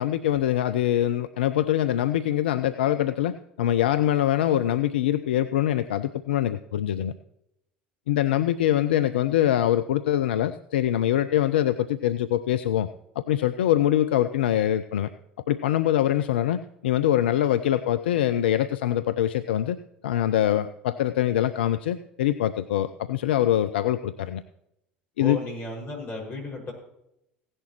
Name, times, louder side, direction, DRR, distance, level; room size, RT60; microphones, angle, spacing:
voice 1, 0.0-7.1 8.1-12.9 13.2-15.1 15.5-19.8 20.0-24.4 25.2-25.4, left 12 dB, 70° left, 11 dB, 0.4 m, -24 dB
voice 2, 25.2-26.7, left 2 dB, 35° left, -2 dB, 5.5 m, -34 dB
16.5 x 11.0 x 3.0 m, 0.83 s
figure-of-eight pair, 70°, 6 cm